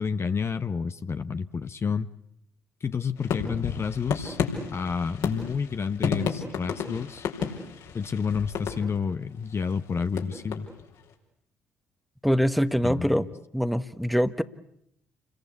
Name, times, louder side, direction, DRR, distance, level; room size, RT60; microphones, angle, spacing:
voice 1, 0.0-2.1 2.8-4.4 4.7-7.3 7.9-10.7 12.8-13.2, left 6 dB, 40° left, 10 dB, 1.0 m, -29 dB
sound 1, 3.2-9.2 9.7-11.0, left 6 dB, 65° left, 4.8 m, -32 dB
voice 2, 12.2-13.3 13.5-14.4, equal, ahead, 13 dB, 1.4 m, -24 dB
29.5 x 22.0 x 8.3 m, 0.75 s
figure-of-eight pair, 45°, 7 cm